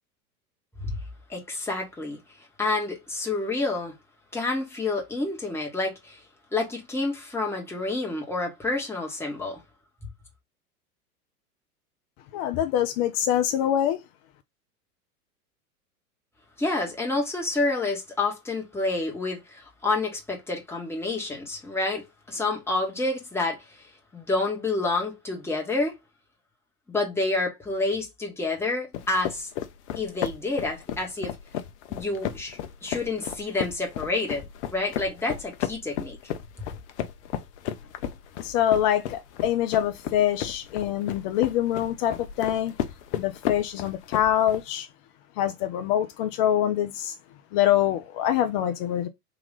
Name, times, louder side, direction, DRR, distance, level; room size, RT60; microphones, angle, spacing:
voice 1, 1.3-2.2 2.6-3.9 4.3-6.2 6.5-9.6 16.6-26.0 26.9-29.5 29.9-31.3 31.9-34.4 34.7-36.2, left 2 dB, 5° left, 1.5 m, -29 dB
voice 2, 12.3-14.0 38.4-42.7 43.2-44.9 45.4-47.1 47.5-49.1, left 11 dB, 30° left, 0.4 m, -25 dB
sound 1, 28.9-44.6, left 10 dB, 50° left, 0.7 m, -34 dB
3.8 x 2.9 x 3.9 m
figure-of-eight pair, 95°, 45 cm